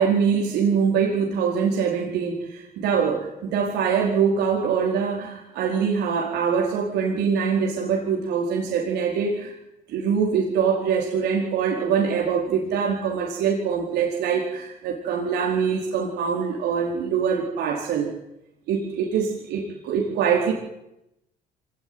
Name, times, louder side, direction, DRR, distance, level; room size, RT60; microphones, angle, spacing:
voice 1, 0.0-9.6 9.9-18.1 18.7-20.5, right 6 dB, 80° right, -1 dB, 4.5 m, -23 dB
25.5 x 18.5 x 9.6 m, 0.89 s
cardioid pair, 110°, 17 cm